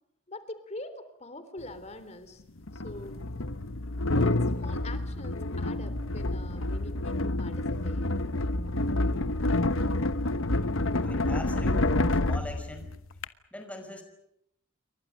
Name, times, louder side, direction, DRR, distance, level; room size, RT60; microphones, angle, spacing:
voice 1, 0.3-2.4 2.7-3.2 4.0-8.0, left 2 dB, 35° left, 11 dB, 3.5 m, -44 dB
sound 1, 1.6-1.7 2.7-13.3, left 2 dB, 70° left, 1.2 m, -28 dB
voice 2, 11.0-12.0 12.2-13.0 13.5-14.0, equal, 5° left, 5 dB, 5.3 m, -41 dB
29.0 x 24.0 x 6.6 m, 0.77 s
head